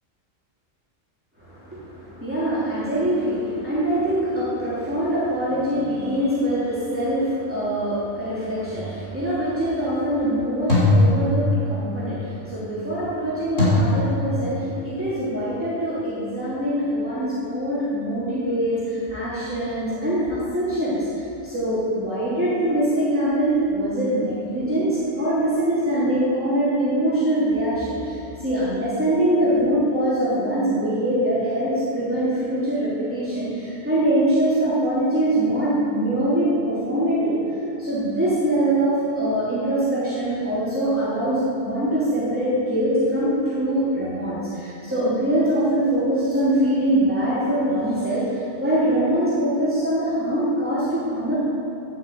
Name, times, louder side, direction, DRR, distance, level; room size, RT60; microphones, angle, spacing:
voice 1, 1.4-51.4, right 1 dB, 10° right, -12 dB, 3.2 m, -23 dB
sound 1, 8.7-9.1 10.7-11.9 13.6-13.7, left 2 dB, 70° left, 4.0 m, -20 dB
10.5 x 9.9 x 7.7 m, 2.8 s
omnidirectional pair, 1.4 m